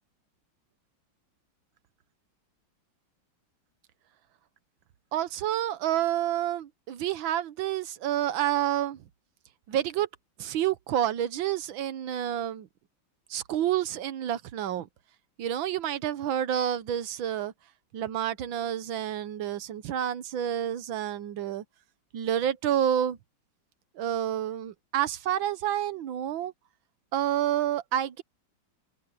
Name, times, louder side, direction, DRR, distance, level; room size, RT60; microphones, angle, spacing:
voice 1, 5.1-9.0 9.7-10.1 10.4-12.7 13.3-14.9 15.4-17.5 17.9-21.6 22.1-23.2 24.0-26.5 27.1-28.2, right 11 dB, 80° right, 1.7 m, -29 dB
omnidirectional pair, 2.1 m